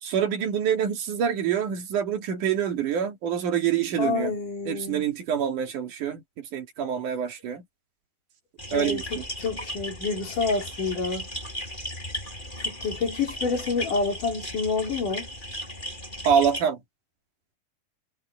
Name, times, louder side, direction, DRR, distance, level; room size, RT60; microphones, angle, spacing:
voice 1, 0.0-4.3 4.7-7.6 8.7-9.2 16.3-16.8, right 8 dB, 65° right, 3.6 m, -26 dB
voice 2, 4.0-5.1 8.7-11.3 12.6-15.3, left 4 dB, 65° left, 5.2 m, -28 dB
sound 1, 8.6-16.6, equal, 10° left, 6.7 m, -36 dB
omnidirectional pair, 4.0 m